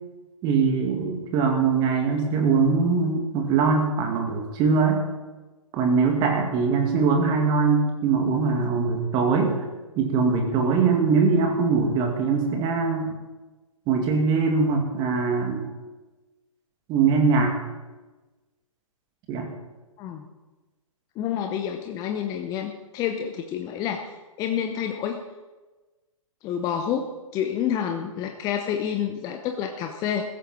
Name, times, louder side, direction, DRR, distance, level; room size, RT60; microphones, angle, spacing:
voice 1, 0.4-5.0 5.7-9.5 10.0-13.1 13.9-15.6 16.9-17.6 19.3-19.5, right 5 dB, 25° right, 3 dB, 2.3 m, -22 dB
voice 2, 20.0-20.3 21.2-24.1 24.4-25.2 26.4-30.3, left 9 dB, 20° left, 5 dB, 0.9 m, -28 dB
15.5 x 13.5 x 4.4 m, 1.2 s
figure-of-eight pair, 125°, 18 cm